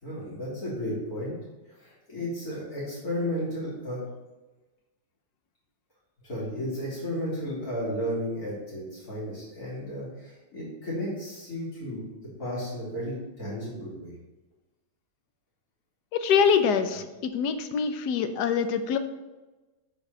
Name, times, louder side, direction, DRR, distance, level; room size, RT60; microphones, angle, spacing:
voice 1, 0.0-1.3 1.8-4.0 6.2-12.1 12.4-14.1, equal, 50° left, -6 dB, 4.0 m, -33 dB
voice 2, 16.1-19.0, left 6 dB, 65° left, 9 dB, 1.2 m, -24 dB
9.1 x 4.2 x 6.8 m, 1.1 s
omnidirectional pair, 2.1 m